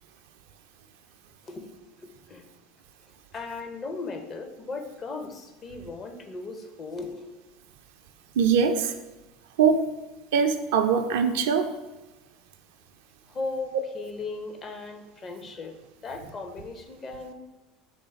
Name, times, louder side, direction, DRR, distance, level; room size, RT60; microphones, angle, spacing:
voice 1, 2.0-2.4 3.3-7.4 13.3-15.7 16.0-17.3, left 3 dB, 35° left, 6 dB, 0.6 m, -37 dB
voice 2, 8.4-8.9 9.6-9.8 10.3-11.7, right 6 dB, 70° right, 6 dB, 0.4 m, -22 dB
3.3 x 3.2 x 4.3 m, 1.1 s
hypercardioid pair, 70°, 0 cm